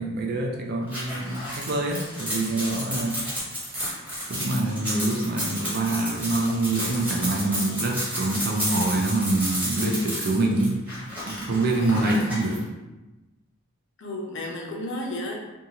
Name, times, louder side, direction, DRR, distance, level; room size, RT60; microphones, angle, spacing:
voice 1, 0.0-3.2 4.3-10.8 11.3-12.6, right 2 dB, 45° right, 1 dB, 0.4 m, -25 dB
sound 1, 0.9-12.6, equal, 10° right, 0.9 m, -31 dB
voice 2, 11.7-12.2 14.0-15.4, left 1 dB, 55° left, 0 dB, 0.6 m, -33 dB
2.7 x 2.3 x 2.8 m, 1.1 s
head